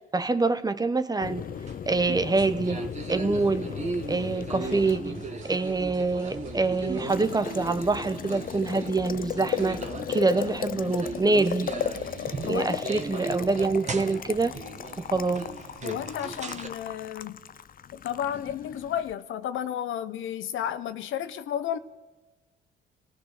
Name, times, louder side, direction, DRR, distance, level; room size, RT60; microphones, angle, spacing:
voice 1, 0.0-1.5 1.9-2.8 3.1-3.7 4.1-5.2 5.5-9.8 10.1-11.7 12.4-14.5 15.0-15.5, right 3 dB, 20° right, 1.1 m, -25 dB
Boiling, 1.2-19.1, left 8 dB, 45° left, 0.6 m, -37 dB
sound 1, 1.5-16.7, right 3 dB, 35° right, 2.0 m, -38 dB
sound 2, 4.6-13.0, right 4 dB, 80° right, 3.6 m, -47 dB
voice 2, 12.4-12.8 15.8-17.4 17.9-21.8, left 10 dB, 80° left, 1.1 m, -32 dB
29.0 x 18.0 x 6.7 m
cardioid pair, 90°, 20 cm